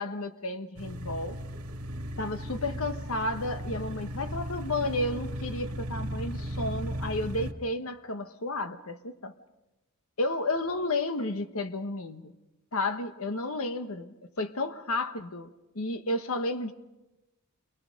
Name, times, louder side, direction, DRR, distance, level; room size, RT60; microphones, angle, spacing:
voice 1, 0.0-1.4 2.2-9.3 10.2-12.3 12.7-16.7, left 2 dB, 70° left, 1.2 m, -32 dB
sound 1, 0.8-7.5, equal, 85° right, 2.2 m, -36 dB
29.0 x 23.5 x 5.2 m
head